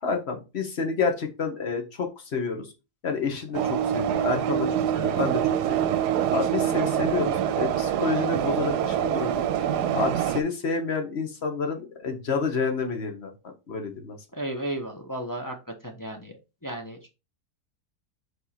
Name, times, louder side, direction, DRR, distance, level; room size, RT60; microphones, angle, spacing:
voice 1, 0.0-2.7 3.0-4.7 4.9-5.4 5.7-5.9 6.3-13.3 13.7-14.2, left 5 dB, 45° left, 4 dB, 1.4 m, -29 dB
sound 1, 3.5-10.4, right 10 dB, 85° right, 1.2 m, -25 dB
voice 2, 14.3-15.5 15.8-16.3 16.6-17.1, right 1 dB, 20° left, 2 dB, 0.6 m, -33 dB
4.9 x 4.7 x 4.3 m, 0.28 s
omnidirectional pair, 1.7 m